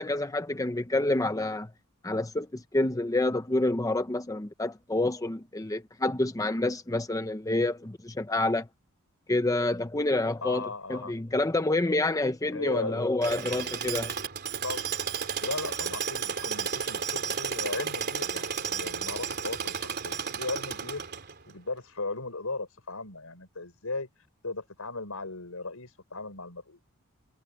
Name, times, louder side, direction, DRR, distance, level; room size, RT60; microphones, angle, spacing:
voice 1, 0.0-1.7 2.0-8.7 9.3-14.1, left 2 dB, 15° left, 0.8 m, -28 dB
voice 2, 10.4-11.1 12.5-13.1 14.6-14.9 15.4-21.0 21.4-24.1 24.4-26.8, left 3 dB, 85° left, 5.3 m, -37 dB
Tools, 13.2-21.5, right 6 dB, 50° right, 3.8 m, -33 dB
head